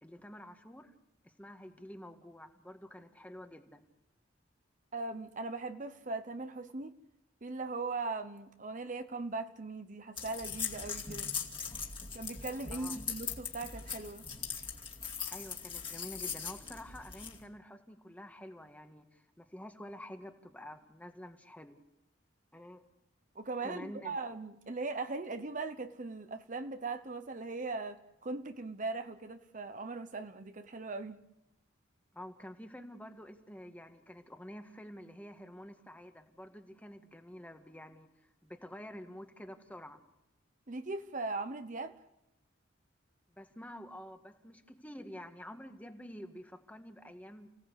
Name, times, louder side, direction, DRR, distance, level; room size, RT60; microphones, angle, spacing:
voice 1, 0.0-0.9 1.2-3.8 12.7-13.0 15.3-21.8 22.5-22.8 23.6-24.2 32.1-40.0 43.4-47.5, equal, 10° left, 6 dB, 1.6 m, -49 dB
voice 2, 4.9-6.9 7.4-11.3 12.1-14.2 23.3-31.2 40.7-41.9, right 3 dB, 40° right, 9 dB, 0.9 m, -39 dB
sound 1, 10.2-17.4, left 6 dB, 25° left, 2.5 m, -40 dB
29.5 x 17.0 x 8.2 m, 0.90 s
head